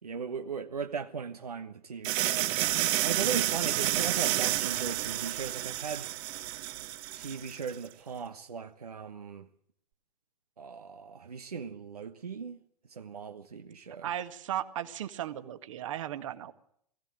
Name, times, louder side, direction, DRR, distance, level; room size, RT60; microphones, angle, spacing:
voice 1, 0.0-2.6 3.0-6.1 7.1-9.5 10.6-12.6 12.9-14.1, right 6 dB, 75° right, 1.4 m, -38 dB
sound 1, 2.0-7.7, right 15 dB, 35° right, 1.2 m, -30 dB
voice 2, 14.0-16.5, right 11 dB, 55° right, 1.9 m, -36 dB
22.0 x 16.0 x 7.7 m
figure-of-eight pair, 105°, 20 cm